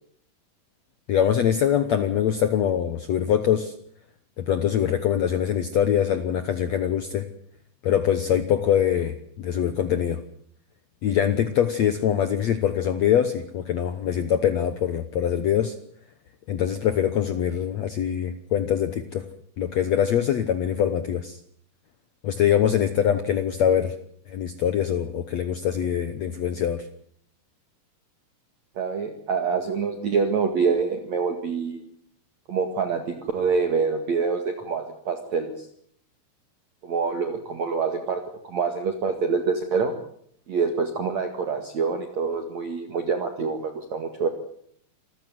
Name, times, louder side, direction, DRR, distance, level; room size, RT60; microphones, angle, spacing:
voice 1, 1.1-3.7 4.4-7.3 7.8-10.2 11.0-15.7 16.5-19.3 19.6-21.4 22.2-23.9 24.3-26.9, left 9 dB, 85° left, 10 dB, 1.5 m, -23 dB
voice 2, 28.8-31.8 32.5-35.7 36.8-39.9 40.5-44.3, right 5 dB, 50° right, 6 dB, 2.7 m, -26 dB
27.0 x 15.0 x 9.4 m, 0.65 s
omnidirectional pair, 4.8 m